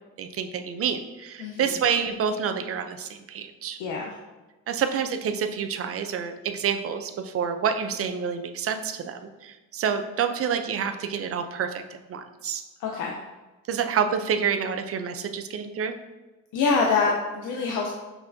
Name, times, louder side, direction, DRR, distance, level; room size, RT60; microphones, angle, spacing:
voice 1, 0.2-3.8 4.7-11.8 12.1-12.6 13.7-16.0, right 7 dB, 50° right, 7 dB, 0.5 m, -28 dB
voice 2, 1.4-1.7 3.8-4.1 12.8-13.2 16.5-17.9, left 4 dB, 90° left, 0 dB, 0.6 m, -25 dB
5.9 x 3.2 x 2.6 m, 1.2 s
cardioid pair, 90°, 30 cm